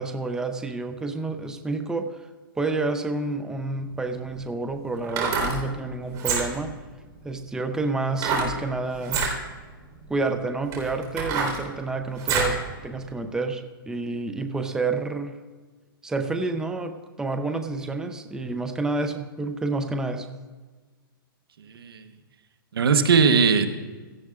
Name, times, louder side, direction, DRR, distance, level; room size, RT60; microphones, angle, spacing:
voice 1, 0.0-2.3 2.6-6.7 7.2-9.2 10.1-15.4 16.0-20.3, right 3 dB, 5° right, 7 dB, 0.6 m, -29 dB
sound 1, 3.8-3.9 5.0-5.6 6.1-6.7 8.2-8.5 9.0-9.3 10.1-10.2 10.7-12.6 13.0-13.1, right 4 dB, 30° right, 4.0 m, -26 dB
voice 2, 21.6-22.0 22.7-23.7, right 5 dB, 85° right, 9 dB, 1.2 m, -19 dB
16.5 x 14.0 x 2.5 m, 1.4 s
hypercardioid pair, 140°, 12 cm